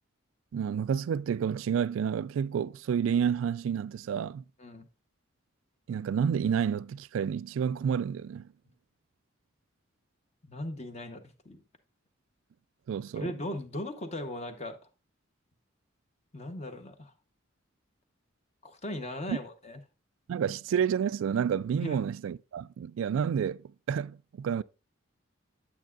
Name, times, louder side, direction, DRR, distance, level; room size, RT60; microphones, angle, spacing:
voice 1, 0.5-4.4 5.9-8.5 12.9-13.3 19.3-19.4 20.3-24.6, right 7 dB, 75° right, 0.3 m, -29 dB
voice 2, 10.4-11.6 13.1-14.8 16.3-17.1 18.6-19.8 21.8-22.0, left 1 dB, 30° left, 0.8 m, -38 dB
9.1 x 8.4 x 2.4 m
head